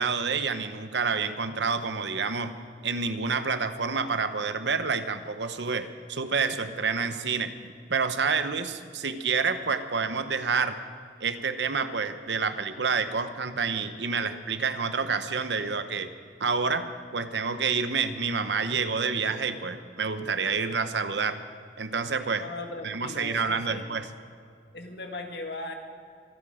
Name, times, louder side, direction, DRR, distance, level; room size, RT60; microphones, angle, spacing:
voice 1, 0.0-2.5 2.8-7.5 7.9-10.8 11.2-16.1 16.4-21.4 21.8-22.4 22.8-24.1, right 5 dB, 80° right, 10 dB, 0.9 m, -28 dB
voice 2, 22.4-23.9 24.7-25.7, left 2 dB, 65° left, 4 dB, 1.8 m, -38 dB
24.0 x 10.0 x 5.0 m, 2.3 s
head